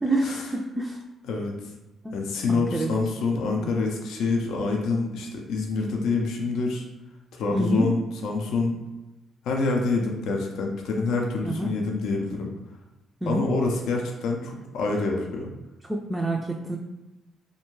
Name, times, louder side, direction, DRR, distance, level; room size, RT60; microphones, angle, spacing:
voice 1, 0.0-1.0 2.0-2.2 2.5-2.9 3.3-3.7 7.5-7.9 11.4-11.7 13.2-13.5 15.8-16.8, right 1 dB, 10° right, -1 dB, 0.3 m, -27 dB
voice 2, 2.1-6.8 7.3-8.8 9.4-12.5 13.3-15.5, left 3 dB, 80° left, 1 dB, 0.4 m, -26 dB
2.5 x 2.2 x 3.0 m, 1.0 s
cardioid pair, 90°, 0 cm